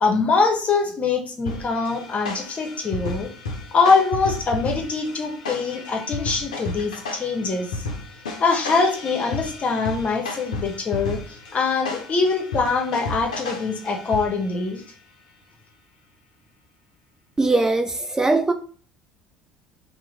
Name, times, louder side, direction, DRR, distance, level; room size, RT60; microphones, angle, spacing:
voice 1, 0.0-3.3 3.7-7.7 8.4-11.2 11.5-14.8, left 4 dB, 35° left, 1.0 m, -23 dB
sound 1, 1.5-14.6, left 3 dB, 85° left, 0.6 m, -33 dB
voice 2, 17.4-18.5, right 2 dB, 15° right, 0.4 m, -20 dB
3.0 x 2.2 x 3.9 m
hypercardioid pair, 65°, 4 cm